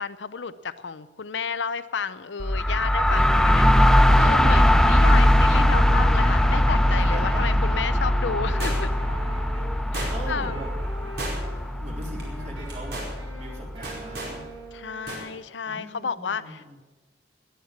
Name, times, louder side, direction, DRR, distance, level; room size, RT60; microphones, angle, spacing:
voice 1, 0.0-8.9 9.9-10.6 14.7-16.6, left 6 dB, 85° left, 13 dB, 0.7 m, -32 dB
sound 1, 2.4-14.1, left 1 dB, 5° left, 0.5 m, -21 dB
Wind instrument woodwind instrument, 5.5-9.7 10.2-11.6 12.0-15.2, right 1 dB, 85° right, 5.2 m, -43 dB
voice 2, 7.0-7.8 10.1-10.7 11.8-13.1 13.3-14.4 15.6-16.8, right 1 dB, 40° right, -1 dB, 3.6 m, -40 dB
sound 2, 8.6-9.1 9.9-10.4 11.2-11.7 12.0-12.2 12.7-13.1 13.8-14.4 15.1-15.3 15.6-15.7, right 1 dB, 65° right, 4.9 m, -34 dB
20.0 x 9.0 x 7.3 m, 1.2 s
head